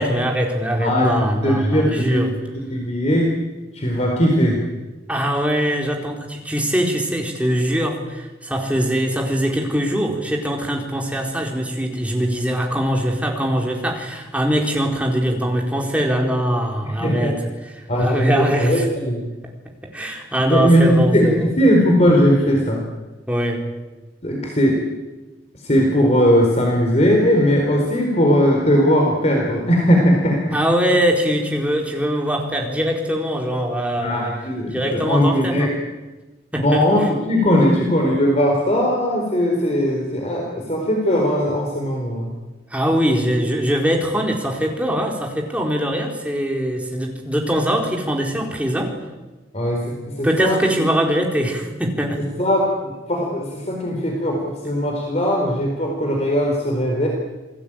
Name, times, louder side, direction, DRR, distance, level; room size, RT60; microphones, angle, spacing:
voice 1, 0.0-2.4 5.1-17.4 17.8-18.9 19.8-21.5 23.3-23.8 30.5-34.3 34.7-35.7 36.5-37.1 37.6-37.7 42.7-49.0 50.2-52.3, equal, 10° right, 0 dB, 4.3 m, -22 dB
voice 2, 0.8-1.2 1.4-2.2 2.7-3.3 3.7-4.6 16.8-17.4 17.9-19.2 20.4-21.3 21.6-22.8 24.2-24.8 25.5-30.4 34.0-35.7 36.5-37.0 37.3-42.3 49.5-50.6 52.4-57.1, equal, 40° left, 1 dB, 4.3 m, -19 dB
28.0 x 19.5 x 9.0 m, 1.2 s
head